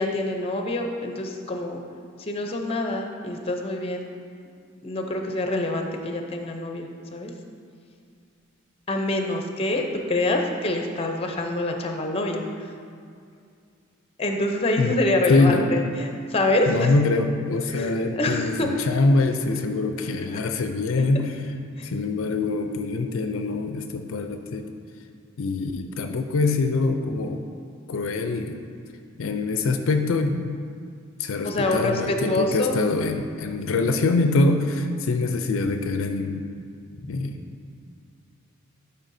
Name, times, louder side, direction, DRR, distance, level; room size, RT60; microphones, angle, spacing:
voice 1, 0.0-1.8 2.2-4.0 4.8-7.3 8.9-12.7 14.2-16.9 17.5-18.7 20.3-20.4 20.9-21.0 21.8-21.9 31.4-32.8 37.0-37.1, left 2 dB, 30° left, 3 dB, 0.6 m, -26 dB
voice 2, 15.3-15.6 16.7-21.3 21.8-24.7 25.4-27.4 27.9-28.6 29.2-30.5 31.2-36.5 37.1-37.4, left 3 dB, 70° left, 6 dB, 0.4 m, -24 dB
11.5 x 5.4 x 2.7 m, 2.3 s
head